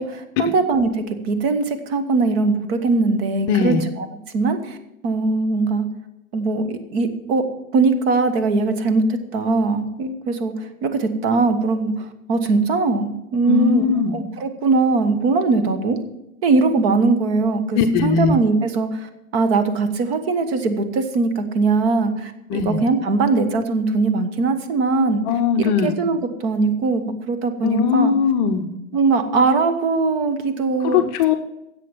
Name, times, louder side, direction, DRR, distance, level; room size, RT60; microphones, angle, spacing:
voice 1, 0.0-4.0 4.3-4.8 5.0-5.9 6.3-7.4 7.7-13.8 14.1-16.0 16.4-25.2 25.6-28.1 28.9-31.0, right 3 dB, 45° right, 8 dB, 1.5 m, -21 dB
voice 2, 3.5-3.8 13.5-14.2 17.7-18.4 22.5-22.8 25.3-26.0 27.6-28.7 30.8-31.3, left 6 dB, 30° left, 6 dB, 0.7 m, -19 dB
10.5 x 7.8 x 7.1 m, 0.90 s
hypercardioid pair, 125°, 43 cm